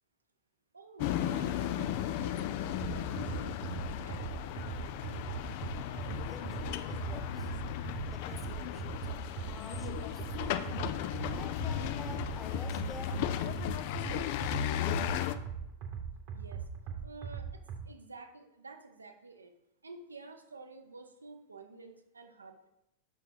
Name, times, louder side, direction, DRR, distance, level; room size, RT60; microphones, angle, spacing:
voice 1, 0.7-4.3 4.9-5.4 16.3-16.7 17.0-19.5 19.8-22.7, right 3 dB, 75° right, 6 dB, 0.7 m, -51 dB
sound 1, 1.0-15.3, left 11 dB, 50° left, 0.4 m, -35 dB
sound 2, 2.8-17.8, right 7 dB, 40° right, 1.0 m, -40 dB
voice 2, 6.3-11.0 11.3-13.3, left 2 dB, 10° left, 5 dB, 0.9 m, -50 dB
5.7 x 4.5 x 4.6 m, 0.83 s
figure-of-eight pair, 90°, 0 cm